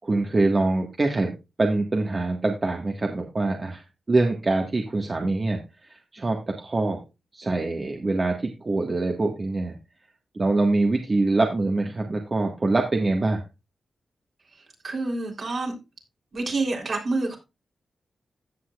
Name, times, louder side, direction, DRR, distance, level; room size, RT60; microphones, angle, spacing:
voice 1, 0.0-7.0 7.3-9.8 10.3-13.4, right 2 dB, 40° right, 1.6 m, -24 dB
voice 2, 14.8-15.7 16.3-17.4, right 3 dB, 60° right, 3.5 m, -27 dB
16.0 x 6.4 x 2.4 m
cardioid pair, 55°, 0 cm